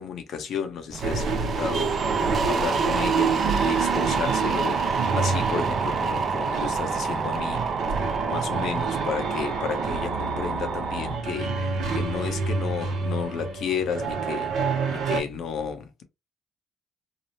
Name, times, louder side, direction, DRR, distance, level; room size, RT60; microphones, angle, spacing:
voice 1, 0.0-2.0 2.4-7.6 8.0-14.5 14.9-16.0, left 6 dB, 75° left, 0.6 m, -32 dB
sound 1, 0.9-11.2, right 5 dB, 50° right, 0.5 m, -28 dB
sound 2, 1.0-15.2, right 5 dB, 80° right, 0.8 m, -29 dB
2.8 x 2.0 x 2.8 m
cardioid pair, 90°, 0 cm